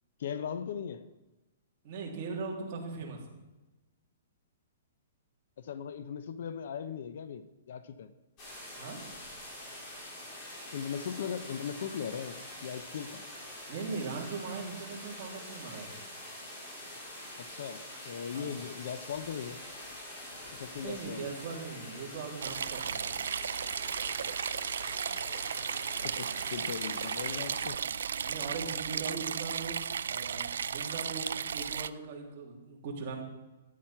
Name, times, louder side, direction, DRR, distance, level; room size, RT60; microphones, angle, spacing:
voice 1, 0.2-1.1 5.6-8.1 10.7-13.2 17.4-19.6 20.5-21.3 25.1-25.5 26.0-27.8, left 7 dB, 55° left, 13 dB, 0.7 m, -39 dB
voice 2, 1.8-3.2 8.8-9.0 13.7-16.0 18.3-18.5 20.7-23.2 28.2-29.8 30.0-33.2, right 4 dB, 35° right, -2 dB, 3.1 m, -40 dB
sound 1, 8.4-27.7, left 1 dB, 25° left, 4.0 m, -45 dB
sound 2, 22.4-31.9, right 7 dB, 80° right, 0.4 m, -35 dB
13.5 x 9.4 x 5.7 m, 1.1 s
hypercardioid pair, 170°, 0 cm